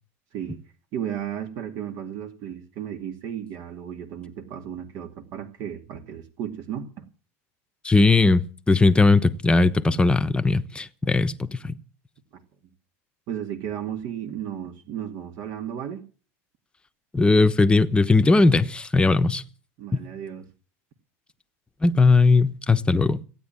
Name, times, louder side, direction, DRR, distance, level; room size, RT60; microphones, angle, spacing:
voice 1, 0.9-7.1 11.0-11.2 12.3-12.4 13.3-16.0 19.8-20.5, right 9 dB, 60° right, 2.3 m, -34 dB
voice 2, 7.8-8.4 8.7-11.8 17.1-19.4 19.9-20.0 21.8-23.2, left 3 dB, 15° left, 1.0 m, -19 dB
16.5 x 9.3 x 9.1 m
supercardioid pair, 115°, 8 cm